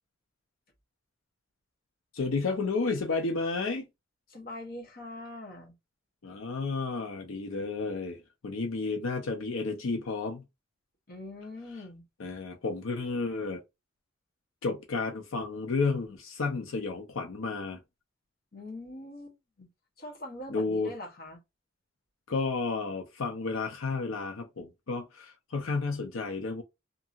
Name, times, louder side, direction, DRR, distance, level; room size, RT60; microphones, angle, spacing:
voice 1, 2.1-3.9 6.2-10.4 12.2-13.6 14.6-17.8 20.5-20.9 22.3-26.6, left 4 dB, 90° left, 0.6 m, -32 dB
voice 2, 4.3-5.8 11.1-12.0 18.5-19.7 20.0-21.4, left 1 dB, 50° left, 1.0 m, -43 dB
2.7 x 2.6 x 2.5 m
head